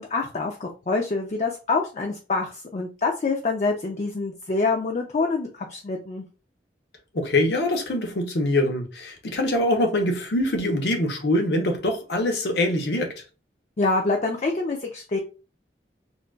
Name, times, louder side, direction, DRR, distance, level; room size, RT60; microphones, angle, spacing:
voice 1, 0.0-6.2 13.8-15.2, left 3 dB, 40° left, 0.4 m, -26 dB
voice 2, 7.1-13.2, left 1 dB, 70° left, 0.8 m, -24 dB
3.8 x 2.3 x 2.2 m
head